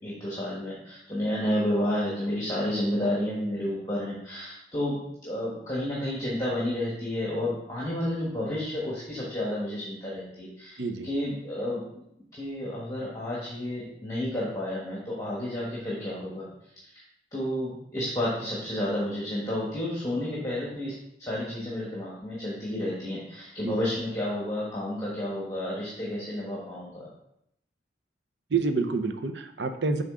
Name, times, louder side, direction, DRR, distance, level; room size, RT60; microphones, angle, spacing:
voice 1, 0.0-12.0 12.3-16.5 17.3-20.9 21.2-27.1, left 1 dB, 15° left, -6 dB, 1.4 m, -31 dB
voice 2, 10.8-11.1 23.6-23.8 28.5-30.0, right 4 dB, 70° right, 8 dB, 0.6 m, -28 dB
7.3 x 3.8 x 3.7 m, 0.76 s
head